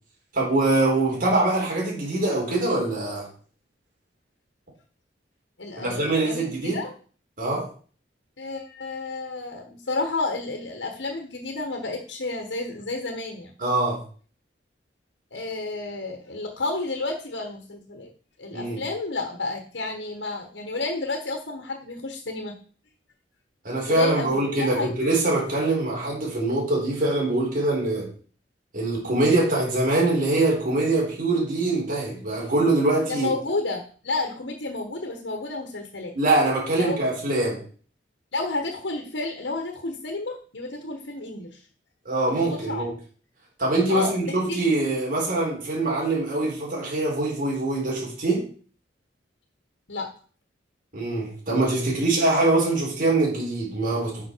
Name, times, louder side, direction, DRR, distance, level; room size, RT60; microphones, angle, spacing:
voice 1, 0.3-3.3 5.8-6.8 7.4-7.7 13.6-14.0 18.5-18.8 23.6-28.1 28.7-33.3 36.1-37.6 42.0-42.9 43.6-48.5 50.9-54.2, right 2 dB, 50° right, -2 dB, 4.3 m, -23 dB
voice 2, 5.6-6.9 8.4-13.5 15.3-18.1 18.4-22.6 23.9-24.9 33.1-36.1 36.7-37.0 38.3-41.6 42.5-42.8 43.9-44.6 49.9-50.1, left 3 dB, 80° left, 4 dB, 1.5 m, -31 dB
9.9 x 6.1 x 4.7 m, 0.42 s
head